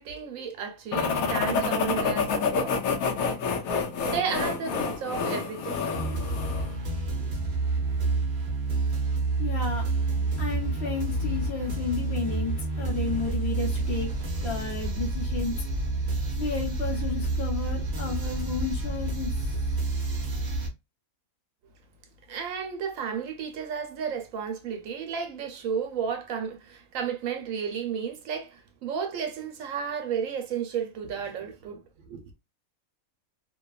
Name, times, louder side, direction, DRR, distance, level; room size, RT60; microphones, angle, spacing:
voice 1, 0.0-2.8 4.0-5.8 7.1-7.4 22.3-31.8 32.1-32.2, right 7 dB, 70° right, 0.9 m, -33 dB
sound 1, 0.9-6.7, left 5 dB, 80° left, 1.1 m, -28 dB
sound 2, 5.9-20.7, right 2 dB, 45° right, 0.6 m, -29 dB
voice 2, 9.4-9.9 10.4-14.1 14.4-15.6 16.4-19.6, left 4 dB, 55° left, 0.9 m, -32 dB
2.7 x 2.2 x 2.2 m
omnidirectional pair, 1.5 m